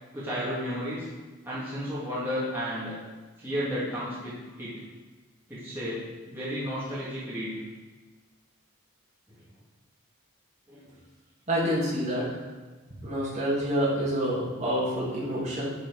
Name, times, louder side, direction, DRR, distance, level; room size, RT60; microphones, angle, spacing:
voice 1, 0.1-1.1 1.4-3.0 3.4-4.7 5.5-6.0 6.3-7.5 10.7-10.9, equal, 10° right, -10 dB, 2.3 m, -32 dB
voice 2, 11.5-12.3 13.0-15.6, equal, 30° right, -7 dB, 2.5 m, -27 dB
10.5 x 5.0 x 4.9 m, 1.3 s
head